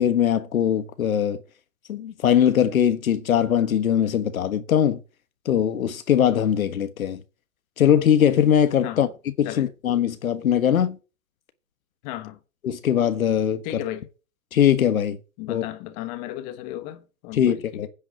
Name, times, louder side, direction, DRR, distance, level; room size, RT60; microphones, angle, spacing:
voice 1, 0.0-1.4 1.9-5.0 5.4-7.2 7.8-9.1 9.4-11.0 12.6-13.8 14.5-15.2 15.5-15.6 17.3-17.9, left 9 dB, 80° left, 1.4 m, -21 dB
voice 2, 12.0-12.4 13.6-14.1 15.4-17.9, left 14 dB, 30° left, 1.4 m, -34 dB
10.0 x 6.1 x 7.5 m
hypercardioid pair, 145°, 41 cm